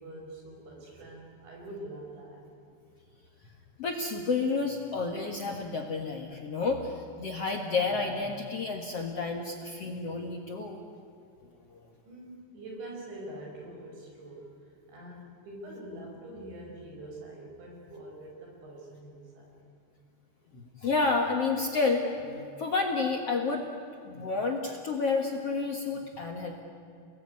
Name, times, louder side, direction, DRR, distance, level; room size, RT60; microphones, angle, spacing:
voice 1, 0.0-2.5 12.0-19.6, right 1 dB, 85° right, 0 dB, 7.7 m, -45 dB
voice 2, 3.8-10.8 11.7-11.8 20.5-23.7 24.0-26.6, left 4 dB, 55° left, 2 dB, 1.8 m, -30 dB
29.5 x 19.5 x 9.7 m, 2.6 s
omnidirectional pair, 5.0 m